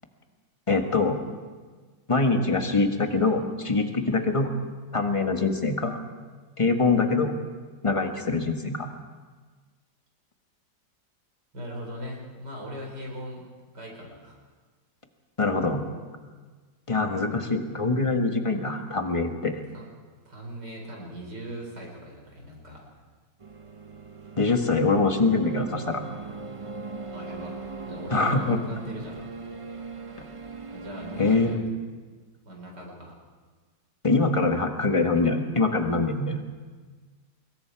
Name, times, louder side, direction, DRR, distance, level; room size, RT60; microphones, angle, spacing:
voice 1, 0.7-1.2 2.1-4.5 4.9-6.0 6.6-7.3 7.8-8.9 15.4-15.9 16.9-19.6 24.4-26.0 28.1-28.6 31.2-31.5 34.0-36.4, left 3 dB, 20° left, 4 dB, 1.4 m, -24 dB
voice 2, 11.5-13.4 13.7-14.4 19.7-19.8 20.2-23.0 27.1-29.2 30.7-31.6 32.5-33.2, right 1 dB, 65° right, -1 dB, 5.0 m, -39 dB
sound 1, 23.4-31.5, right 4 dB, 35° right, 0.5 m, -40 dB
25.0 x 21.5 x 4.7 m, 1.4 s
omnidirectional pair, 2.0 m